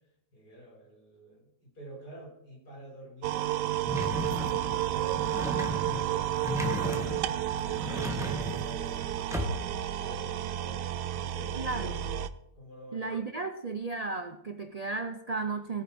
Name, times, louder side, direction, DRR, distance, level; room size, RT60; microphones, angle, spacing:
voice 1, 0.3-4.0 4.4-5.3 5.6-7.5 8.2-12.1 12.5-13.1, right 2 dB, 65° left, -2 dB, 5.6 m, -46 dB
sound 1, 3.2-12.3, right 12 dB, 80° right, 1.2 m, -32 dB
sound 2, 3.9-9.9, equal, ahead, 1.2 m, -36 dB
voice 2, 11.6-12.0 12.9-15.8, right 3 dB, 60° right, 7 dB, 0.4 m, -34 dB
18.0 x 8.8 x 4.4 m, 0.81 s
omnidirectional pair, 1.8 m